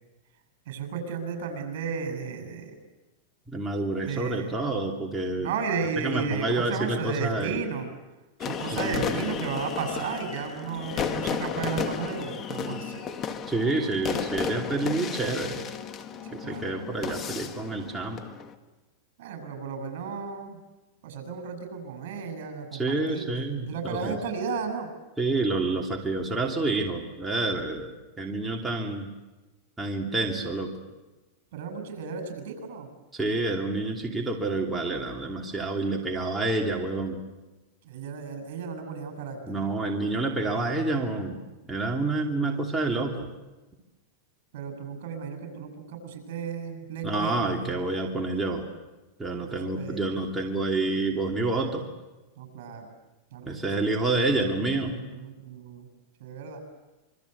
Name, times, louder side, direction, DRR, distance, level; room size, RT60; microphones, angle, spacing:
voice 1, 0.7-2.7 4.0-4.6 5.4-7.9 8.4-13.0 16.2-16.7 19.2-20.6 21.0-24.9 31.5-32.9 37.8-39.6 42.2-42.7 44.5-47.8 49.4-50.1 52.4-52.9 53.3-53.9 54.9-55.9 56.2-56.6, right 5 dB, 65° right, 7 dB, 7.6 m, -34 dB
voice 2, 3.5-5.5 6.0-7.6 8.7-9.2 13.5-15.6 16.3-18.2 22.7-24.2 25.2-27.9 28.2-29.1 29.8-30.7 33.1-37.2 39.5-41.4 41.7-43.3 47.0-48.7 49.2-51.9 53.5-55.0, right 2 dB, 10° right, -1 dB, 2.8 m, -28 dB
sound 1, 8.4-18.5, left 7 dB, 30° left, 1.9 m, -33 dB
26.5 x 24.5 x 8.3 m, 1.1 s
supercardioid pair, 140°, 0 cm